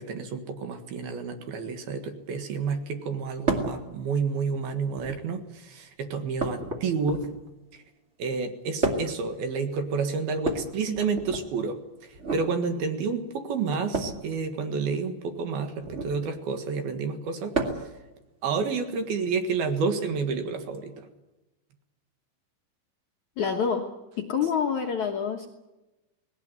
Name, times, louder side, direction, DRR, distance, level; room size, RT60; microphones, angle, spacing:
voice 1, 0.0-7.3 7.7-7.8 8.2-17.6 18.4-21.1, right 5 dB, 65° right, 6 dB, 3.2 m, -30 dB
sound 1, 3.5-3.8 4.9-5.4 6.4-7.5 8.8-9.2 10.4-11.4 12.1-12.5 13.9-14.2 15.8-16.2 17.5-17.9 19.4-19.5 20.7-20.8, right 2 dB, 30° right, 1.4 m, -30 dB
voice 2, 23.4-23.9 24.2-25.5, left 6 dB, 60° left, 2 dB, 2.0 m, -27 dB
19.0 x 18.5 x 9.3 m, 1.0 s
omnidirectional pair, 5.2 m